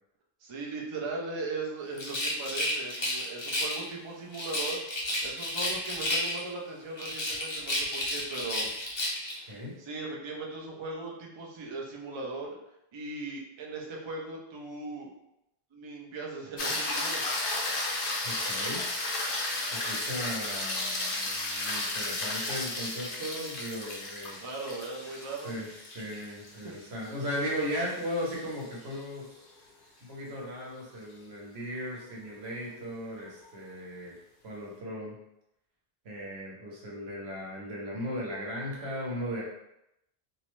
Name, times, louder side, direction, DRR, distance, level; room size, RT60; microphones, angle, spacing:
voice 1, 0.4-4.8 5.2-8.7 9.5-12.6 12.9-15.1 15.7-17.2 24.4-25.5 26.5-26.7, right 3 dB, 45° right, -2 dB, 0.4 m, -38 dB
Rattle, 1.9-3.9 4.3-6.6 7.0-9.4, left 1 dB, 35° left, 0.5 m, -32 dB
sound 1, 16.6-29.0 33.4-33.5, left 2 dB, 65° left, 0.8 m, -34 dB
voice 2, 18.2-18.8 19.7-24.4 25.4-29.4 30.0-34.2 34.4-35.2 36.0-39.4, equal, 80° right, -4 dB, 1.1 m, -37 dB
2.6 x 2.0 x 3.0 m, 0.84 s
omnidirectional pair, 1.1 m